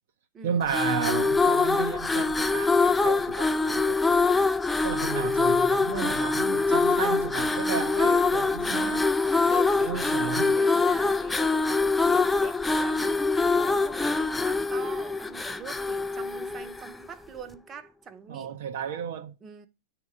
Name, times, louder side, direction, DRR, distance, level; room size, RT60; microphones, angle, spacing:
voice 1, 0.4-4.2 4.8-10.6 18.3-19.3, right 7 dB, 65° right, 0.6 m, -33 dB
sound 1, 0.6-17.1, left 3 dB, 10° left, 0.3 m, -24 dB
voice 2, 8.6-9.0 9.5-13.3 13.5-18.5 19.4-19.7, right 6 dB, 25° right, 0.8 m, -43 dB
8.7 x 3.0 x 4.7 m
hypercardioid pair, 110°, 0 cm